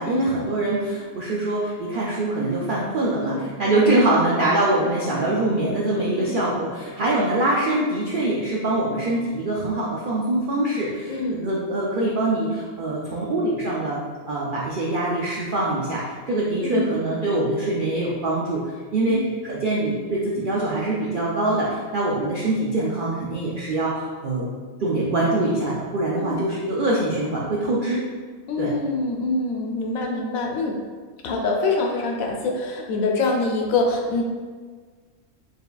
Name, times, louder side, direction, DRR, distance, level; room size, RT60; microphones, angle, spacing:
voice 1, 0.0-14.0 14.3-18.6 18.9-24.5 24.8-28.0 28.6-28.7, right 2 dB, 70° right, -5 dB, 0.5 m, -24 dB
voice 2, 11.1-11.4 16.6-16.9 19.1-19.3 26.1-26.4 28.5-30.8 31.2-34.2, left 3 dB, 75° left, 1 dB, 1.0 m, -25 dB
4.5 x 3.5 x 2.3 m, 1.5 s
omnidirectional pair, 1.5 m